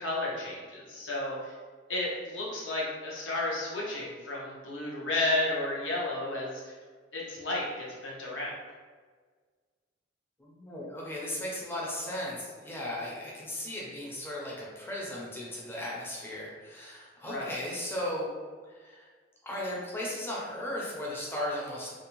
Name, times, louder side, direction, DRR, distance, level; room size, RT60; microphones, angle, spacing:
voice 1, 0.0-1.5 1.9-6.8 7.1-8.5 17.3-17.6, left 2 dB, 85° left, -4 dB, 0.7 m, -32 dB
voice 2, 10.4-18.3 18.7-19.1 19.4-21.9, left 1 dB, 10° left, -5 dB, 0.4 m, -36 dB
2.5 x 2.0 x 2.9 m, 1.5 s
head